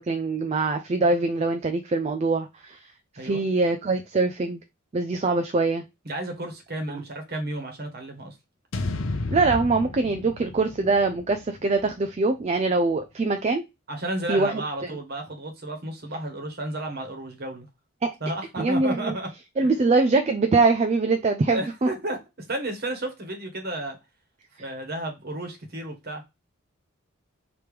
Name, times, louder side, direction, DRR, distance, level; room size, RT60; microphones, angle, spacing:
voice 1, 0.0-2.9 3.2-4.6 4.9-5.8 6.9-7.0 9.3-13.6 14.3-15.0 18.0-18.1 18.6-19.1 19.6-21.9, right 3 dB, 30° right, 0.4 m, -23 dB
voice 2, 6.0-8.4 13.9-17.7 18.2-19.3 19.6-19.7 21.5-22.2 22.5-24.0 24.6-26.2, right 1 dB, 45° right, 1.3 m, -32 dB
sound 1, 8.7-12.9, left 2 dB, 65° left, 0.6 m, -34 dB
3.4 x 3.0 x 4.8 m
head